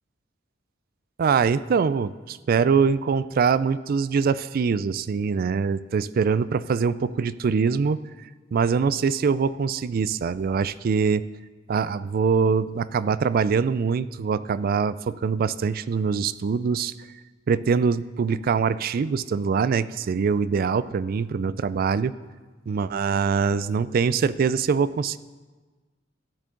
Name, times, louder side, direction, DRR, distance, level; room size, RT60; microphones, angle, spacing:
voice 1, 1.2-8.0 8.5-11.3 11.7-16.9 17.5-22.1 22.7-25.2, right 5 dB, 50° right, 17 dB, 0.3 m, -23 dB
14.0 x 10.0 x 3.8 m, 1.3 s
head